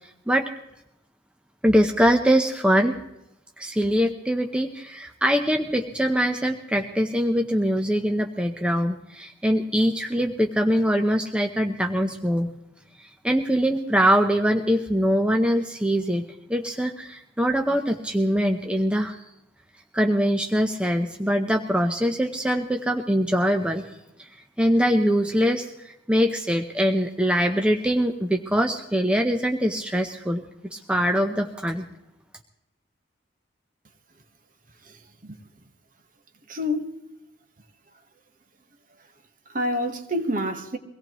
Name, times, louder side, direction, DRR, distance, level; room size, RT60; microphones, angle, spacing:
voice 1, 1.6-2.9 3.6-12.5 13.0-16.2 16.5-19.2 19.9-23.9 24.6-25.7 26.1-30.4 30.7-31.9, equal, 5° right, 0.8 m, -23 dB
voice 2, 34.8-35.4 36.5-37.0 39.5-40.8, left 1 dB, 45° right, 1.3 m, -28 dB
23.5 x 17.5 x 3.1 m
head